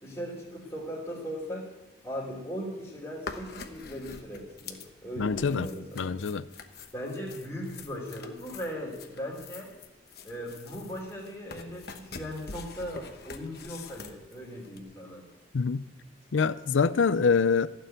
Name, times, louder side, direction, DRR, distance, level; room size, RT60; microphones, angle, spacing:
voice 1, 0.0-1.7 2.0-6.1 6.9-9.7 10.2-15.2, equal, 15° left, 2.9 m, -38 dB
sound 1, 3.2-14.8, left 4 dB, 55° left, 1.1 m, -45 dB
voice 2, 5.2-5.7 6.0-6.5 15.5-15.8 16.3-17.7, left 5 dB, 80° left, 0.5 m, -25 dB
15.0 x 6.9 x 9.1 m
head